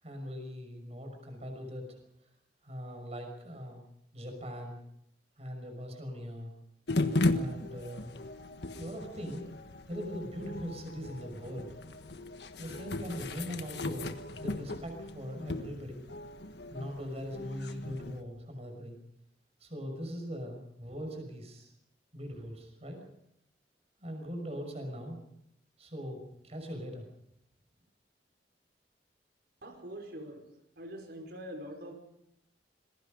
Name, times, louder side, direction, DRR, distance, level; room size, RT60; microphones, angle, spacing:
voice 1, 0.0-2.0 2.6-3.8 4.1-4.8 5.4-6.5 7.3-8.1 8.8-9.5 9.9-11.7 12.6-16.0 16.7-19.0 19.6-21.7 22.1-23.0 24.0-25.2 25.8-27.0, equal, 35° right, 4 dB, 6.1 m, -41 dB
sound 1, 6.9-18.2, left 2 dB, 70° left, 1.5 m, -36 dB
voice 2, 29.6-30.5 30.8-31.9, equal, 65° right, 4 dB, 5.0 m, -44 dB
27.0 x 21.5 x 5.4 m, 0.77 s
head